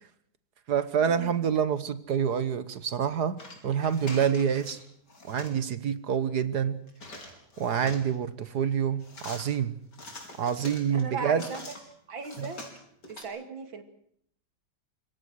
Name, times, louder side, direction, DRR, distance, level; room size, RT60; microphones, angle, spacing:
voice 1, 0.7-4.8 5.2-6.8 7.6-9.8 10.4-11.5 12.4-12.5, right 7 dB, 60° right, 1.7 m, -27 dB
sound 1, 3.4-4.8 5.1-5.6 6.9-8.2 9.0-9.4 9.9-11.8 12.2-13.2, left 2 dB, 60° left, 5.3 m, -44 dB
voice 2, 10.9-11.6 12.1-12.7 13.1-13.8, right 4 dB, 85° right, 3.1 m, -37 dB
26.0 x 23.0 x 6.4 m
omnidirectional pair, 2.1 m